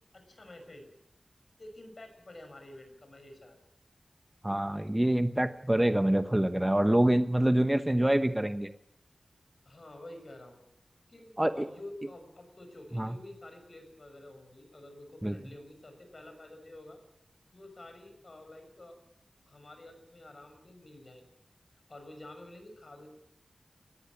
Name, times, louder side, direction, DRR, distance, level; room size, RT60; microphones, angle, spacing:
voice 1, 0.1-0.9 1.6-3.6 9.6-10.6 11.1-17.0 17.5-19.0 19.5-21.3 21.9-23.1, left 1 dB, 50° left, 6 dB, 6.4 m, -49 dB
voice 2, 4.4-8.7 11.4-11.5 12.9-13.1 15.2-15.4, right 1 dB, 15° right, 9 dB, 1.0 m, -26 dB
20.5 x 14.5 x 9.7 m, 0.79 s
wide cardioid pair, 85°, 0 cm